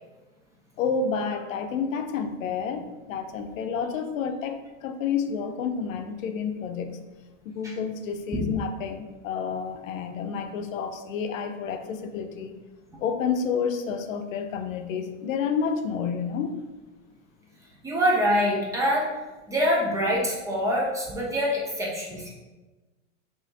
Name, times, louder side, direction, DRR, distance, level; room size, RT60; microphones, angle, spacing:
voice 1, 0.8-7.0 7.4-12.6 13.0-16.6, left 6 dB, 85° left, 7 dB, 0.6 m, -30 dB
voice 2, 17.8-19.1 19.5-22.3, equal, 10° right, -3 dB, 0.4 m, -25 dB
5.5 x 2.9 x 2.7 m, 1.2 s
supercardioid pair, 135°, 39 cm